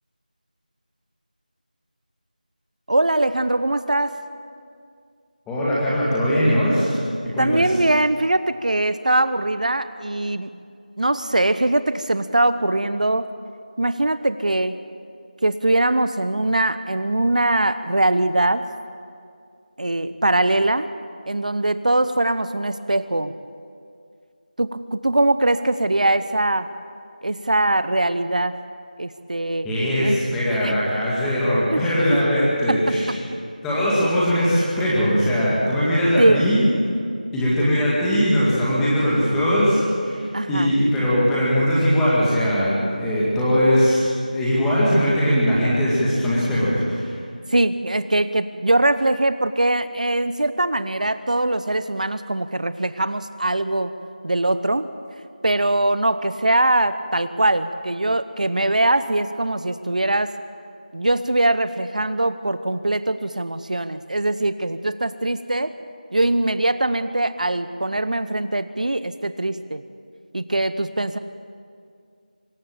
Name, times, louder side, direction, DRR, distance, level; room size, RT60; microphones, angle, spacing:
voice 1, 2.9-4.2 7.4-10.5 11.0-13.3 13.8-14.8 15.4-18.7 19.8-20.9 21.3-23.3 24.6-26.7 27.2-28.6 29.0-29.7 30.0-30.2 30.6-30.7 31.7-31.9 32.7-32.9 33.3-33.4 36.2-36.5 40.3-40.7 47.5-54.0 54.2-54.9 55.4-60.3 60.9-65.7 66.1-69.8 70.3-71.2, right 2 dB, 60° right, 13 dB, 0.8 m, -21 dB
voice 2, 5.5-7.0 7.3-7.6 29.6-33.0 33.6-36.7 37.3-47.1, equal, 5° left, -8 dB, 2.0 m, -20 dB
24.5 x 14.0 x 8.9 m, 2.3 s
figure-of-eight pair, 175°, 5 cm